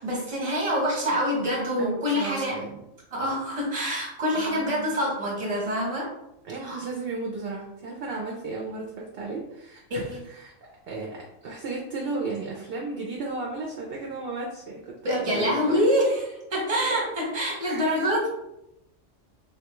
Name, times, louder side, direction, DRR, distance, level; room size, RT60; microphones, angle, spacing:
voice 1, 0.0-2.5 3.1-6.1 6.6-6.8 9.9-10.2 15.0-18.3, equal, 30° right, -3 dB, 0.9 m, -26 dB
voice 2, 1.8-2.8 4.3-5.0 6.4-15.9 17.6-17.8, right 3 dB, 60° right, -1 dB, 0.7 m, -34 dB
3.6 x 2.3 x 2.9 m, 0.86 s
omnidirectional pair, 1.3 m